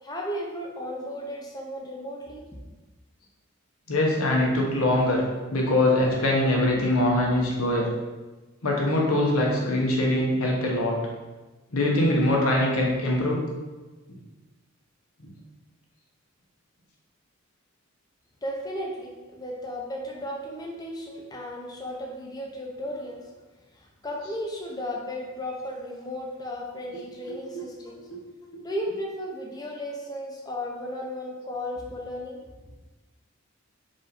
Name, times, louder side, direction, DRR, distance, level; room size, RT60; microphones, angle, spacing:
voice 1, 0.0-2.4 18.4-23.2 23.7-28.0 28.6-32.7, equal, 20° left, -1 dB, 0.6 m, -35 dB
voice 2, 3.9-5.2 5.5-7.9 8.6-11.0 11.7-13.4 27.3-27.6 28.1-28.2, left 1 dB, 80° left, -2 dB, 1.1 m, -23 dB
4.8 x 2.6 x 4.1 m, 1.2 s
head